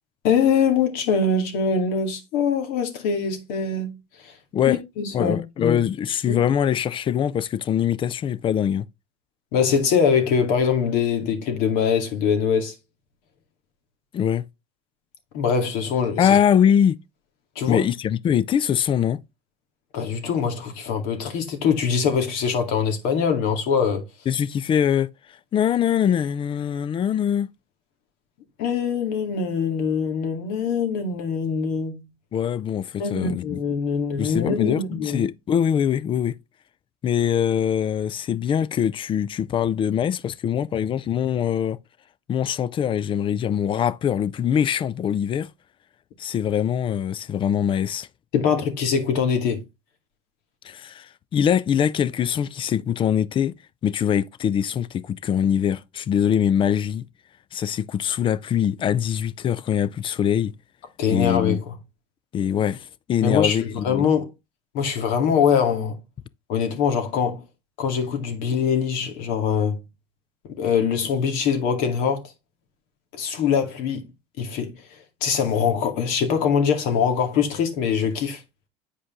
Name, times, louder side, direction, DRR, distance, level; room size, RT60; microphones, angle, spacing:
voice 1, 0.2-4.0 4.2-4.3 4.7-5.8 6.3-6.4 9.5-12.7 15.3-16.3 17.6-17.8 19.9-24.0 28.6-32.1 33.0-35.2 48.3-49.6 61.0-61.7 63.2-64.3 64.7-66.0 66.5-67.4 67.8-69.8 70.5-72.3 73.1-74.1 74.4-74.8 75.2-78.4, left 6 dB, 65° left, 2.3 m, -23 dB
voice 2, 5.1-8.9 14.1-14.4 16.2-17.0 17.7-19.2 24.3-25.1 25.5-27.5 32.3-33.6 34.2-36.4 37.0-41.8 42.3-45.5 46.2-48.1 50.6-53.5 53.8-57.0 57.5-60.5 61.1-61.6 62.3-64.1, left 9 dB, 35° left, 0.5 m, -23 dB
8.4 x 5.1 x 3.7 m
supercardioid pair, 100°, 16 cm